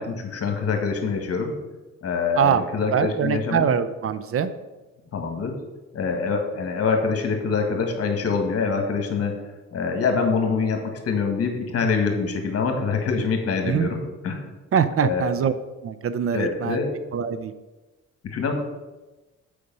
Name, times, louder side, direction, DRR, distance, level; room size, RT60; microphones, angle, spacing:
voice 1, 0.0-1.5 2.0-3.6 5.1-5.5 5.9-9.4 9.7-14.5 15.0-15.3 16.3-16.9 18.2-18.5, left 5 dB, 50° left, 4 dB, 1.6 m, -25 dB
voice 2, 2.9-4.5 13.6-13.9 14.7-15.5 15.8-16.8 17.1-17.5, right 7 dB, 50° right, 12 dB, 0.5 m, -23 dB
6.8 x 5.1 x 5.4 m, 1.1 s
cardioid pair, 90°, 30 cm